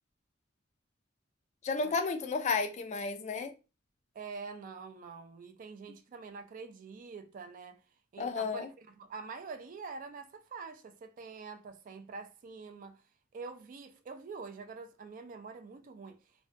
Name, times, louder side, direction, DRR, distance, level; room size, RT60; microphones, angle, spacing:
voice 1, 1.6-3.5 8.2-8.7, left 4 dB, 35° left, 0.3 m, -32 dB
voice 2, 4.2-7.8 8.1-13.0 13.3-16.2, right 4 dB, 45° right, 0.3 m, -45 dB
2.5 x 2.1 x 2.5 m
head